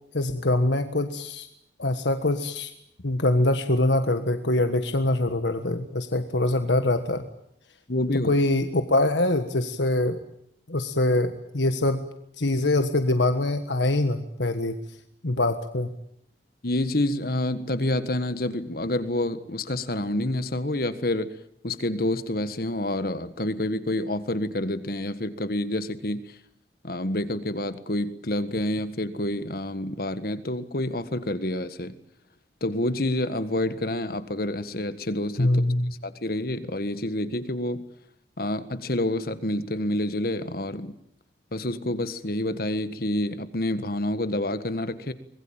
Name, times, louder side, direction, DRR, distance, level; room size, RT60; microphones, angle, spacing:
voice 1, 0.1-1.5 1.8-2.7 3.0-7.2 8.2-10.2 10.7-12.0 12.4-14.8 15.2-15.9 35.4-35.9, left 2 dB, 80° left, 8 dB, 1.6 m, -24 dB
voice 2, 7.9-8.3 16.6-21.3 21.6-26.4 26.8-32.0 32.6-35.6 36.0-37.8 38.4-41.0 41.5-45.1, left 1 dB, 55° left, 12 dB, 1.6 m, -28 dB
24.5 x 21.0 x 8.9 m, 0.73 s
head